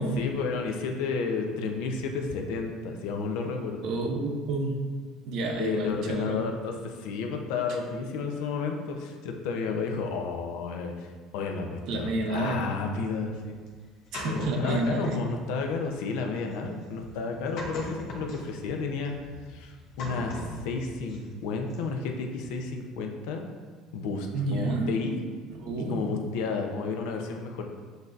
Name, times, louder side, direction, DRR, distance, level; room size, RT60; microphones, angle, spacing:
voice 1, 0.2-3.9 5.6-11.1 11.3-13.6 14.2-19.1 19.5-23.5 23.9-25.2 25.7-27.7, left 4 dB, 75° left, 3 dB, 0.5 m, -32 dB
voice 2, 3.8-4.8 5.3-6.4 11.9-12.7 14.1-15.2 24.3-24.9 25.5-26.1, right 2 dB, 55° right, 2 dB, 0.7 m, -29 dB
sound 1, 13.1-15.3 15.7-21.4 21.7-22.0, left 2 dB, 55° left, 0.9 m, -39 dB
7.8 x 2.7 x 2.5 m, 1.5 s
cardioid pair, 160°, 0 cm